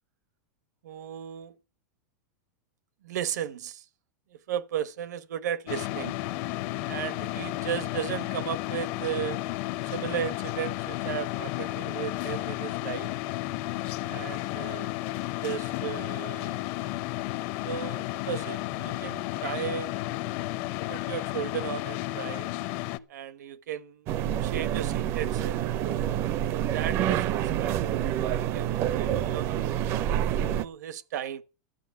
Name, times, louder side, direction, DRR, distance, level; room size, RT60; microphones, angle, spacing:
voice 1, 0.8-1.6 3.0-3.9 4.3-6.2 6.9-9.4 9.8-13.1 14.1-14.9 15.4-16.6 17.6-19.9 20.9-22.5 23.1-24.1 24.4-25.6 26.5-29.6 30.0-31.4, right 10 dB, 75° right, 1.1 m, -35 dB
sound 1, 5.7-23.0, left 17 dB, 35° left, 0.6 m, -33 dB
sound 2, 24.1-30.6, right 11 dB, 30° right, 0.5 m, -27 dB
12.0 x 8.2 x 6.9 m
supercardioid pair, 170°, 9 cm